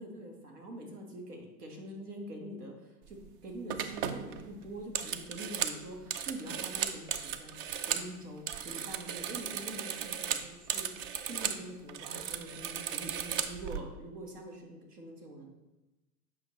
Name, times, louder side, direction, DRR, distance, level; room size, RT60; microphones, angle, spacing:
voice 1, 0.0-3.2 3.4-7.5 7.9-15.5, right 1 dB, 80° right, 2 dB, 1.8 m, -45 dB
sound 1, 3.1-3.3 3.7-8.1 8.4-11.6 11.9-13.8, right 8 dB, 40° right, 0.5 m, -36 dB
8.2 x 5.7 x 3.2 m, 1.0 s
hypercardioid pair, 100°, 46 cm